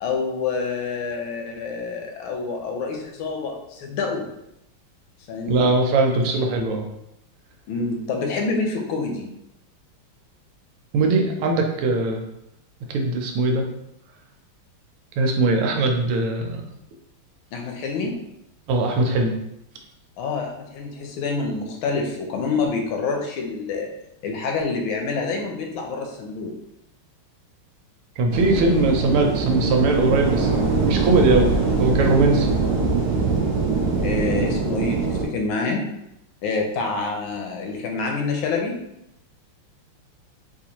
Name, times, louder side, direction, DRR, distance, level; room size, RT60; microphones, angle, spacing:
voice 1, 0.0-4.3 5.3-5.7 7.7-9.3 17.5-18.2 20.2-23.9 24.2-26.6 34.0-35.9 36.4-38.8, left 4 dB, 75° left, 2 dB, 1.3 m, -27 dB
voice 2, 5.5-6.8 10.9-12.2 12.9-13.6 15.2-16.6 18.7-19.4 28.2-31.5 31.8-32.5 34.4-34.6, right 2 dB, 85° right, 3 dB, 1.5 m, -20 dB
sound 1, 28.3-35.3, right 4 dB, 70° right, 1.0 m, -22 dB
4.3 x 2.5 x 2.8 m, 0.82 s
omnidirectional pair, 2.4 m